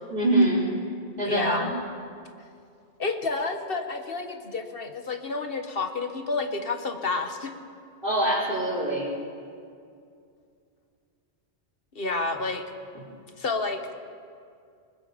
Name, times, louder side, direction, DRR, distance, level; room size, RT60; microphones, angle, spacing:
voice 1, 0.1-0.7 1.2-1.7 8.0-9.1, right 1 dB, 55° right, -4 dB, 4.3 m, -24 dB
voice 2, 1.3-1.7 3.0-7.6 12.0-12.6 13.4-14.0, left 3 dB, 60° left, 6 dB, 1.6 m, -30 dB
25.5 x 21.0 x 5.2 m, 2.4 s
omnidirectional pair, 1.1 m